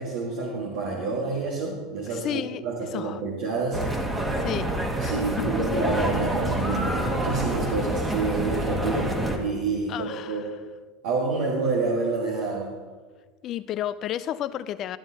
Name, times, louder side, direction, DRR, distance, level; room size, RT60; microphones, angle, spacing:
voice 1, 0.0-3.8 5.0-10.5 11.0-12.7, right 4 dB, 70° right, -4 dB, 1.7 m, -28 dB
voice 2, 2.1-2.6 2.9-3.2 4.4-4.7 5.0-5.1 5.5-5.6 9.9-10.4 13.4-15.0, left 11 dB, 50° left, 15 dB, 0.4 m, -32 dB
sound 1, 3.7-9.4, right 1 dB, 15° right, 1.5 m, -27 dB
12.5 x 11.0 x 2.8 m, 1.4 s
hypercardioid pair, 80°, 0 cm